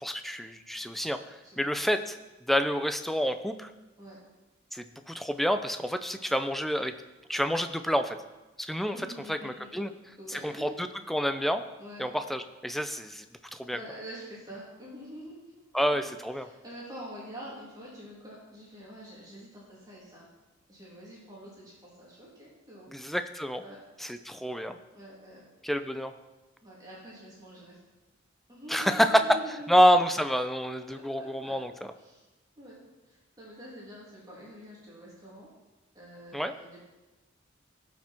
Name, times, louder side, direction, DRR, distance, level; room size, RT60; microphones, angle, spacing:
voice 1, 0.0-2.2 2.5-3.7 4.7-6.9 7.3-8.2 8.6-9.0 9.3-9.9 10.3-11.6 12.0-13.2 13.5-13.8 15.7-16.5 22.9-23.6 24.0-24.8 25.6-26.1 28.7-29.4 29.7-31.7 36.3-36.5, equal, ahead, 9 dB, 0.5 m, -28 dB
voice 2, 1.4-1.9 4.0-4.2 8.9-9.8 10.2-10.7 11.8-12.1 13.7-15.4 15.9-16.0 16.4-20.3 20.7-22.9 23.6-23.8 24.9-25.4 26.6-27.8 28.5-29.8 30.9-31.6 32.0-32.3 32.6-32.8 33.1-35.5 35.9-36.8, right 1 dB, 20° right, -6 dB, 3.1 m, -46 dB
17.5 x 6.1 x 4.4 m, 1.1 s
head